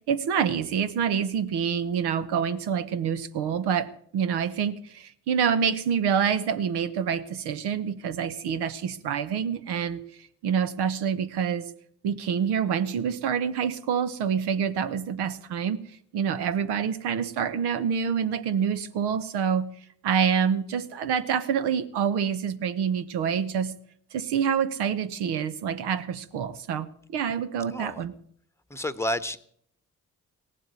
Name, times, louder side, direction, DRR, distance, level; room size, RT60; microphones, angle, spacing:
voice 1, 0.1-10.0 10.4-11.7 12.0-15.8 16.1-19.7 20.0-23.7 24.1-28.1, right 7 dB, 70° right, 11 dB, 1.1 m, -27 dB
voice 2, 27.7-28.0 28.7-29.4, left 1 dB, 5° left, 14 dB, 1.1 m, -30 dB
17.5 x 7.7 x 9.4 m, 0.65 s
hypercardioid pair, 40°, 42 cm